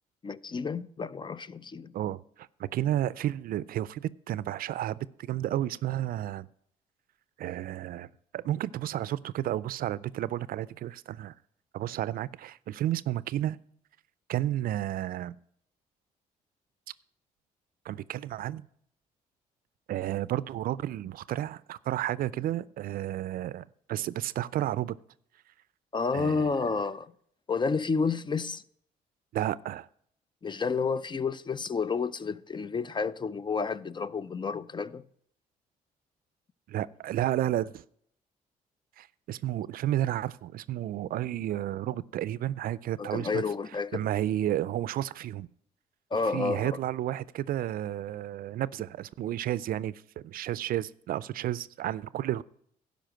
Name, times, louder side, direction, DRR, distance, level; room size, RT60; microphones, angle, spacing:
voice 1, 0.2-1.9 25.9-27.1 27.5-28.6 30.4-35.1 43.0-44.1 46.1-46.8, left 5 dB, 30° left, 0.5 m, -30 dB
voice 2, 1.9-5.0 5.3-6.5 7.4-8.1 8.3-11.3 11.7-13.6 14.3-15.4 17.9-18.6 19.9-25.0 26.1-26.5 29.3-29.9 36.7-37.8 39.0-43.4 43.9-45.5 46.3-52.4, right 13 dB, 65° right, 0.4 m, -32 dB
12.0 x 5.2 x 7.6 m
supercardioid pair, 70°, 16 cm